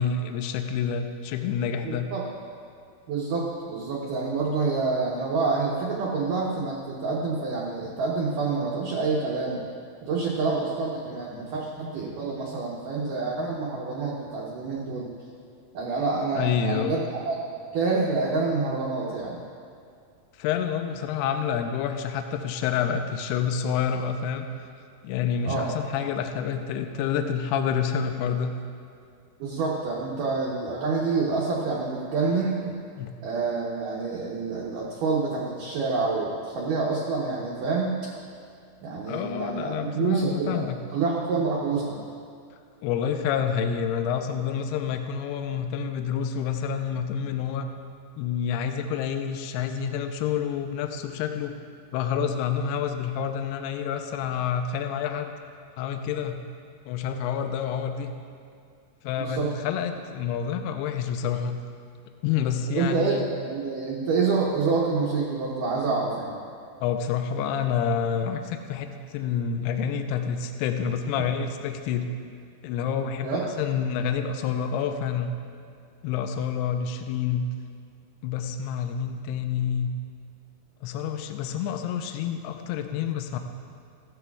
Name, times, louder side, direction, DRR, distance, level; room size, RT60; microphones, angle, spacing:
voice 1, 0.0-2.1 16.3-17.0 20.4-24.5 25.0-28.5 33.0-33.1 39.1-40.8 42.8-47.7 48.2-51.5 51.9-55.3 55.8-56.4 56.9-58.1 59.0-61.6 62.2-63.3 66.8-72.1 72.6-75.3 76.0-77.5 78.2-79.9 80.8-83.4, left 7 dB, 80° left, 6 dB, 2.4 m, -28 dB
voice 2, 1.8-2.3 3.1-9.6 10.0-15.1 15.7-17.4 17.7-19.4 25.4-25.7 29.4-32.8 33.2-38.1 38.8-40.7 40.9-42.0 59.2-59.5 62.7-66.4 73.2-73.5, right 4 dB, 75° right, -4 dB, 2.0 m, -27 dB
16.0 x 12.5 x 2.4 m, 2.4 s
omnidirectional pair, 5.2 m